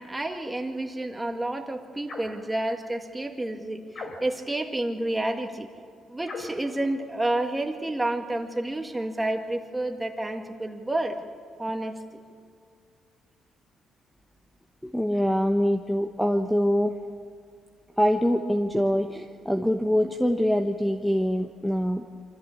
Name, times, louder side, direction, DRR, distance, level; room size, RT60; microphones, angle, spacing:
voice 1, 0.0-5.7 6.1-11.2 11.6-12.2, right 1 dB, 15° right, 4 dB, 1.9 m, -30 dB
sound 1, 2.0-2.4 3.9-4.5 6.2-6.6, left 3 dB, 50° left, 3.8 m, -39 dB
voice 2, 14.8-16.9 18.0-22.0, equal, 5° left, 5 dB, 1.0 m, -24 dB
24.5 x 14.5 x 8.6 m, 2.2 s
cardioid pair, 90°, 0 cm